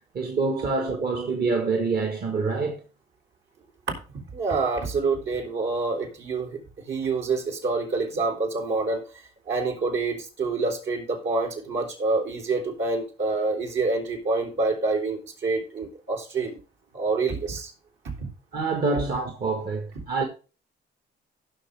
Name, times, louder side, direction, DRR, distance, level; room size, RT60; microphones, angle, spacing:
voice 1, 0.1-2.8 18.5-20.2, right 4 dB, 50° right, 1.7 m, -26 dB
voice 2, 3.9-9.0 9.5-16.6 16.9-17.7 18.0-18.3, right 3 dB, 70° right, 4.1 m, -27 dB
16.0 x 6.1 x 3.5 m
cardioid pair, 90°, 20 cm